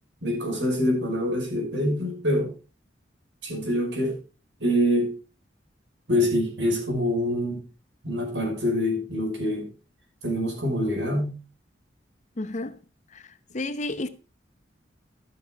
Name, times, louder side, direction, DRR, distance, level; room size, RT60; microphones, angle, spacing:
voice 1, 0.2-2.5 3.4-4.1 4.6-5.1 6.1-7.6 8.0-9.7 10.2-11.3, equal, 80° right, 5.8 m, -25 dB
voice 2, 12.4-12.7 13.5-14.1, left 2 dB, 40° left, 0.8 m, -30 dB
12.5 x 7.2 x 4.6 m
head